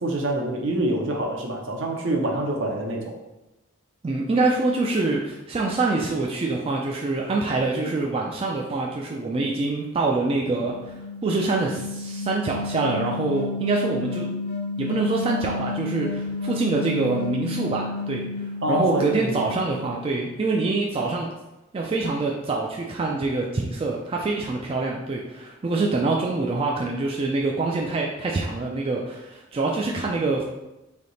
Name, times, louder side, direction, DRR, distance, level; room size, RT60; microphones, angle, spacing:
voice 1, 0.0-3.2 18.6-19.4, right 1 dB, 65° right, 1 dB, 0.7 m, -26 dB
voice 2, 4.0-10.9 11.2-14.3 14.8-21.3 21.7-30.4, right 3 dB, 30° right, -1 dB, 0.3 m, -25 dB
sound 1, 10.3-20.4, left 3 dB, 55° left, 0.5 m, -32 dB
3.4 x 2.7 x 3.9 m, 0.98 s
head